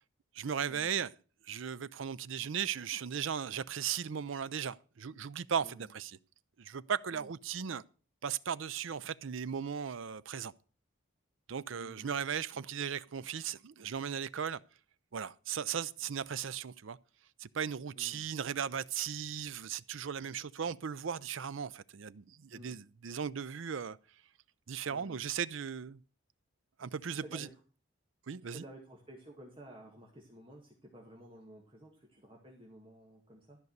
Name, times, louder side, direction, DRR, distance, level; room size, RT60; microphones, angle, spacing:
voice 1, 0.3-1.1 1.5-6.2 6.6-7.8 8.2-10.5 11.5-14.6 15.1-17.0 17.4-24.0 24.7-26.0 26.8-27.5 28.3-28.6, right 7 dB, 75° right, 0.5 m, -37 dB
voice 2, 11.7-12.1 18.0-18.3 22.5-22.8 24.9-25.2 27.0-27.5 28.5-33.6, equal, 25° right, 1.9 m, -53 dB
13.5 x 5.4 x 8.0 m
head